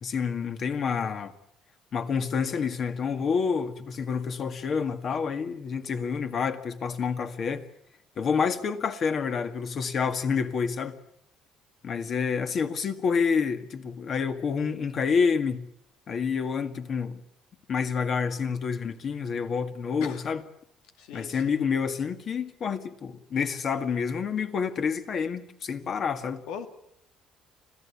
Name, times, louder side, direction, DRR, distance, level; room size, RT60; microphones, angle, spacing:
voice 1, 0.0-1.3 1.9-7.7 8.2-11.0 11.8-15.7 16.1-17.2 17.7-20.4 21.1-26.4, left 6 dB, 40° left, 1.8 m, -28 dB
voice 2, 21.0-21.4 26.5-26.7, left 8 dB, 90° left, 2.1 m, -38 dB
26.0 x 16.0 x 8.5 m
cardioid pair, 140°, 0 cm